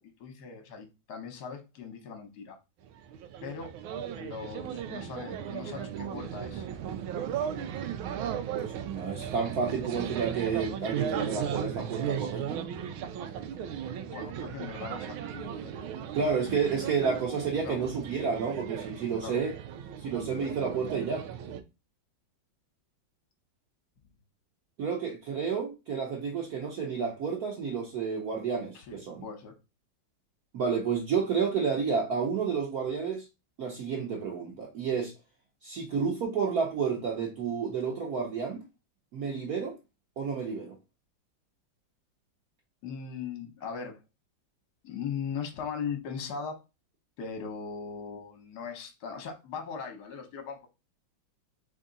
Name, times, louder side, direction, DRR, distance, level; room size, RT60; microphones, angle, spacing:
voice 1, 0.0-2.6 3.4-3.7 4.2-6.7 14.1-15.7 17.6-17.8 19.2-19.4 28.7-29.6 42.8-44.0 44.8-46.6 47.2-50.7, left 6 dB, 60° left, 1.5 m, -39 dB
sound 1, 2.9-21.6, right 9 dB, 90° right, 1.4 m, -36 dB
voice 2, 8.5-12.6 16.1-19.6 20.0-21.2 24.8-29.2 30.5-33.3 33.6-35.1 35.6-38.6 39.1-39.7 40.2-40.7, right 6 dB, 60° right, 1.2 m, -30 dB
3.7 x 3.5 x 3.9 m
omnidirectional pair, 2.2 m